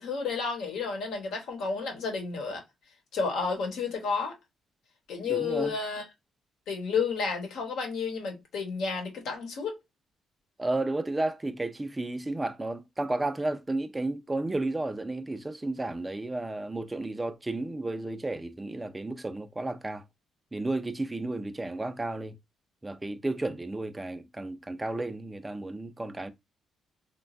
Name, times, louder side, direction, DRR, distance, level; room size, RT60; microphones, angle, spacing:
voice 1, 0.0-2.6 3.1-4.3 5.1-6.0 6.7-9.7, left 5 dB, 75° left, 1.0 m, -31 dB
voice 2, 5.2-5.7 10.6-20.0 20.5-22.4 22.8-26.3, right 2 dB, 15° right, 0.4 m, -32 dB
3.0 x 2.2 x 2.4 m
cardioid pair, 90°, 0 cm